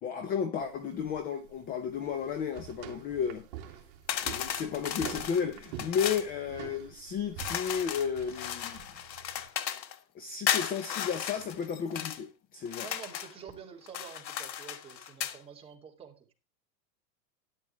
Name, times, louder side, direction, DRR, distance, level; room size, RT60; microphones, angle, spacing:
voice 1, 0.0-3.8 4.2-8.8 10.1-12.9, left 7 dB, 20° left, 0.7 m, -33 dB
sound 1, 0.6-9.5, right 10 dB, 45° right, 2.4 m, -46 dB
sound 2, 4.1-6.3 7.4-10.0 10.5-12.2 12.7-13.4 13.9-15.4, left 10 dB, 90° left, 1.5 m, -35 dB
voice 2, 12.8-16.3, right 7 dB, 10° right, 2.2 m, -48 dB
13.0 x 10.0 x 3.1 m
supercardioid pair, 155°, 49 cm